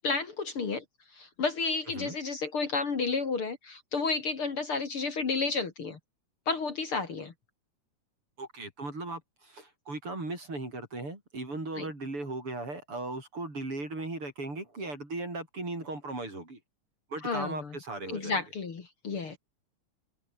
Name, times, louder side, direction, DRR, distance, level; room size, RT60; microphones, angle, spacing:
voice 1, 0.0-0.8 1.1-6.0 6.5-7.3 11.8-11.9 17.2-17.8 18.1-19.4, left 4 dB, 45° left, 3.2 m, -31 dB
voice 2, 8.4-16.6 17.1-18.4, right 2 dB, 45° right, 8.6 m, -37 dB
open air
omnidirectional pair, 3.4 m